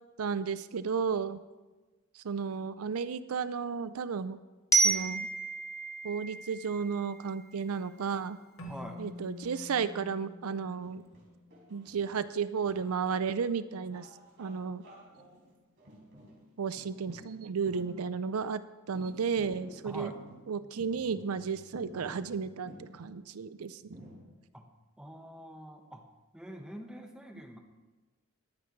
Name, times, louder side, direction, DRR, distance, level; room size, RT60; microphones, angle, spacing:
voice 1, 0.2-1.4 2.1-4.4 4.7-5.3 6.0-8.4 9.0-11.0 11.7-14.1 14.4-14.8 16.6-18.6 18.9-20.1 20.5-23.9, right 6 dB, 85° right, 14 dB, 0.5 m, -33 dB
Glockenspiel, 4.7-7.6, right 4 dB, 15° left, 1.3 m, -30 dB
sound 1, 7.7-8.4 8.8-13.5 13.9-18.5 18.9-23.2 23.9-24.1, equal, 60° right, 4.4 m, -53 dB
Keyboard (musical), 8.6-11.8, left 2 dB, 70° left, 1.9 m, -48 dB
voice 2, 8.6-9.0 19.8-20.2 24.5-24.7 25.0-26.1 26.3-27.6, equal, 5° right, 2 dB, 1.2 m, -45 dB
21.5 x 9.3 x 3.2 m, 1.2 s
head